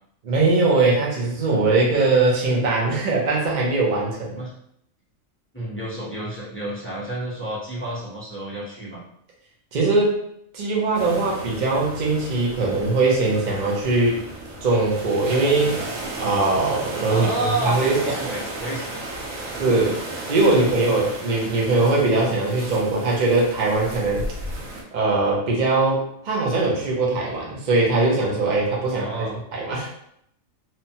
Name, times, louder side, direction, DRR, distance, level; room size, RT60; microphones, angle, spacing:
voice 1, 0.2-4.4 9.7-10.2 10.5-14.2 14.6-15.8 16.1-18.1 19.6-20.0 20.3-24.3 24.9-29.9, right 3 dB, 50° right, -3 dB, 0.6 m, -21 dB
voice 2, 5.5-9.0 17.1-18.9 19.7-19.9 20.4-20.7 28.9-29.3, right 1 dB, 20° left, -7 dB, 0.4 m, -30 dB
sound 1, 10.9-24.8, right 2 dB, 85° right, 1.1 m, -34 dB
2.8 x 2.2 x 2.7 m, 0.71 s
omnidirectional pair, 1.4 m